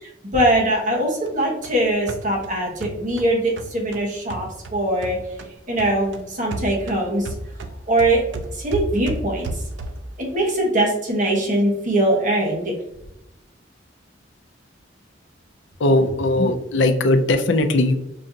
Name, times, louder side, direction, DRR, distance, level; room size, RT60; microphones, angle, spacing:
voice 1, 0.0-5.2 5.7-7.3 7.8-8.2 8.5-9.6 10.2-12.7, right 1 dB, 45° right, -2 dB, 1.1 m, -22 dB
sound 1, 1.3-5.5 5.8-10.2, right 2 dB, 70° right, 0.4 m, -33 dB
voice 2, 15.8-17.9, left 2 dB, 70° left, 7 dB, 0.5 m, -18 dB
5.4 x 2.5 x 2.7 m, 0.85 s
head